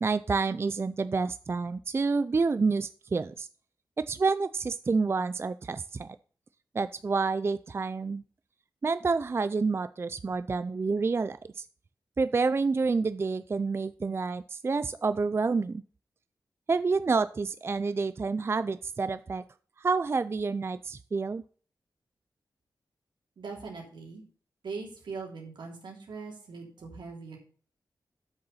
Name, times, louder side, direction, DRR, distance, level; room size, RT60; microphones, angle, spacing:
voice 1, 0.0-3.5 4.0-6.2 6.7-8.2 8.8-11.7 12.2-15.8 16.7-19.4 19.8-21.4, right 4 dB, 35° right, 13 dB, 0.4 m, -28 dB
voice 2, 23.4-24.2 24.6-27.4, right 4 dB, 85° right, 0 dB, 3.2 m, -41 dB
8.0 x 6.7 x 5.5 m, 0.42 s
wide cardioid pair, 115°, 8 cm